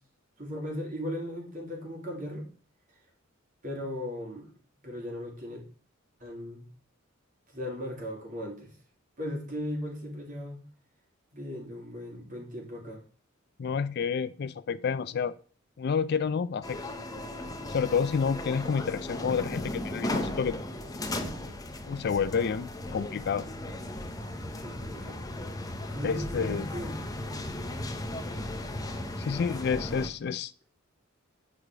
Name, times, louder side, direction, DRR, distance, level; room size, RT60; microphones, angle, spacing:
voice 1, 0.4-2.5 3.6-4.5 4.8-5.6 6.2-6.6 7.5-8.7 9.2-10.6 11.3-13.0 24.6-25.2 25.9-27.0, equal, 40° right, 2.7 m, -37 dB
voice 2, 13.6-15.4 15.8-16.8 17.7-20.6 21.9-23.5 26.0-26.7 29.2-30.5, left 6 dB, 50° left, 0.4 m, -29 dB
sound 1, 16.6-30.1, left 1 dB, 15° left, 0.8 m, -36 dB
8.8 x 4.8 x 4.9 m
head